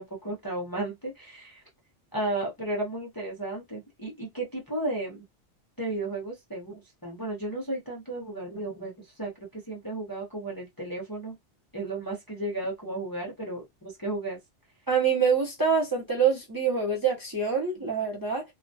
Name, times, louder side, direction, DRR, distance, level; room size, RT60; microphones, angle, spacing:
voice 1, 0.0-1.6 2.1-5.2 5.8-11.4 11.7-14.4, right 2 dB, 25° left, 0.5 m, -34 dB
voice 2, 14.9-18.4, right 6 dB, 25° right, 0.5 m, -25 dB
2.3 x 2.2 x 2.6 m
omnidirectional pair, 1.2 m